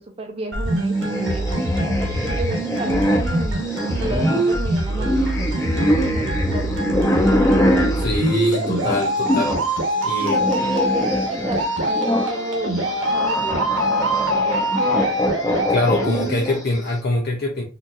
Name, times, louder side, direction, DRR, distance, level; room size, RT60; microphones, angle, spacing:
voice 1, 0.0-1.6 2.2-6.9 10.2-14.8, right 2 dB, 30° right, 2 dB, 0.7 m, -32 dB
sound 1, 0.5-16.5, right 1 dB, 65° right, 1.0 m, -23 dB
sound 2, 0.9-9.7 10.0-16.8, equal, 15° left, 0.7 m, -24 dB
voice 2, 8.0-9.6 10.0-10.4 15.7-17.6, left 2 dB, 50° left, -1 dB, 0.6 m, -23 dB
4.3 x 2.7 x 2.4 m, 0.31 s
head